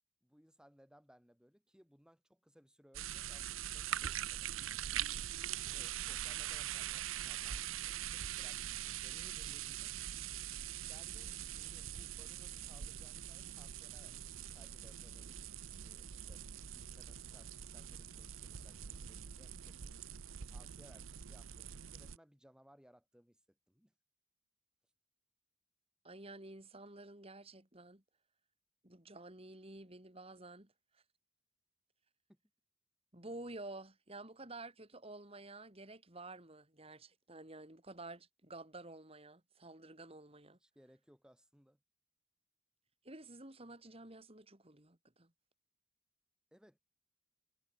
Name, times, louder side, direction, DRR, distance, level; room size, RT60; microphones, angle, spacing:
voice 1, 0.2-4.5 5.7-10.0 10.8-15.5 15.8-16.5 16.7-20.0 20.5-23.9 32.3-32.4 40.6-41.8 46.5-46.8, equal, 5° right, 6.8 m, -65 dB
sound 1, 2.9-22.2, right 11 dB, 85° right, 0.7 m, -43 dB
voice 2, 26.0-28.0 28.8-30.7 33.1-40.6 43.0-45.3, right 2 dB, 30° right, 3.2 m, -51 dB
head